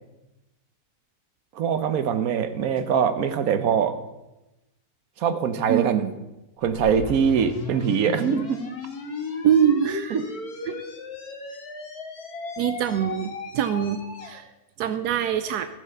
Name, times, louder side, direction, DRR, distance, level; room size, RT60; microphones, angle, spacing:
voice 1, 1.5-4.0 5.2-6.0 6.6-8.6 10.1-10.2, right 7 dB, 65° right, 11 dB, 1.3 m, -23 dB
voice 2, 5.7-6.1 9.4-10.2 10.7-10.8 12.6-14.5 14.8-15.7, right 9 dB, 90° right, 10 dB, 1.2 m, -24 dB
sound 1, 6.6-14.4, left 4 dB, 70° left, 2.0 m, -36 dB
13.5 x 7.2 x 5.6 m, 0.98 s
omnidirectional pair, 1.7 m